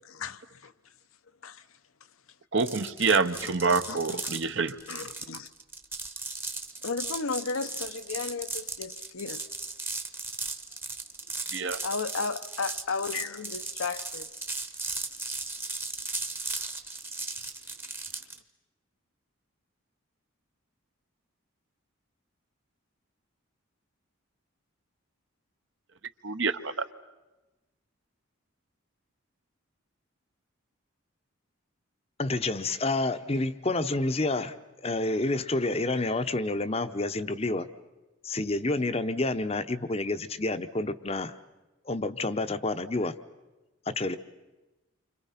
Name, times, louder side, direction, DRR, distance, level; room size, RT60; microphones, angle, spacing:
voice 1, 2.5-4.8 11.5-11.8 26.2-26.8, right 4 dB, 60° right, 1.0 m, -26 dB
sound 1, 2.6-18.4, right 3 dB, 10° right, 1.0 m, -37 dB
voice 2, 3.9-4.2 4.9-5.5 6.8-9.4 11.8-14.2, left 4 dB, 80° left, 0.9 m, -34 dB
voice 3, 32.2-34.5 34.8-37.7 38.2-41.3 41.9-43.1 43.9-44.2, left 2 dB, 30° left, 0.8 m, -29 dB
29.5 x 26.0 x 5.8 m
head